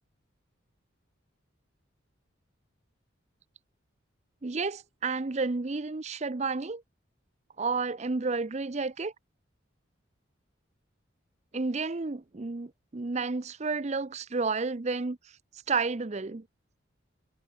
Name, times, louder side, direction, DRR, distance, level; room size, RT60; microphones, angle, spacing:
voice 1, 4.4-6.8 7.6-9.1 11.5-15.2 15.7-16.5, right 4 dB, 35° right, 0.6 m, -31 dB
head